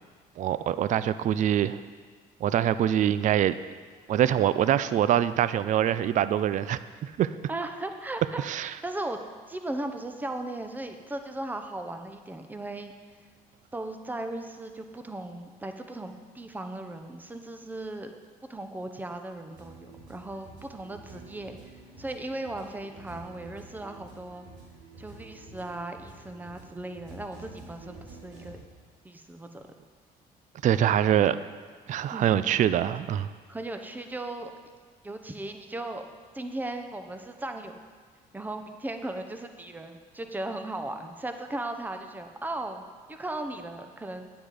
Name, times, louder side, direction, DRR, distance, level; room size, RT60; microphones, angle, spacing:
voice 1, 0.4-1.8 2.4-3.5 4.1-7.3 8.4-8.7 30.6-31.4 31.9-33.3, right 10 dB, 50° right, 14 dB, 0.4 m, -24 dB
voice 2, 7.5-9.2 9.5-12.9 13.7-18.1 18.5-21.6 22.0-24.5 25.0-28.6 29.0-29.6 30.7-30.9 32.1-32.3 33.5-34.5 35.0-36.0 36.3-37.8 38.3-44.3, right 2 dB, 10° right, 6 dB, 0.8 m, -37 dB
sound 1, 19.5-28.5, right 3 dB, 90° right, 3.6 m, -49 dB
9.9 x 9.0 x 5.0 m, 1.5 s
cardioid pair, 110°, 17 cm